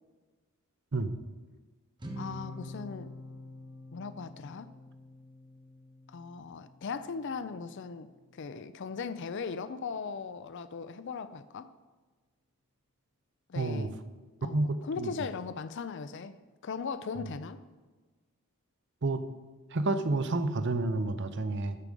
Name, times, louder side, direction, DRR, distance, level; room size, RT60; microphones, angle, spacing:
sound 1, 2.0-8.4, left 1 dB, 20° right, 0.9 m, -47 dB
voice 1, 2.2-3.1 3.9-4.7 6.1-11.7 13.5-13.9 14.4-16.4 16.6-17.6, left 5 dB, 55° left, 13 dB, 0.4 m, -38 dB
voice 2, 13.6-13.9 14.4-15.1 19.0-19.2 19.7-21.8, right 2 dB, 55° right, 11 dB, 0.6 m, -30 dB
13.5 x 4.8 x 5.2 m, 1.3 s
head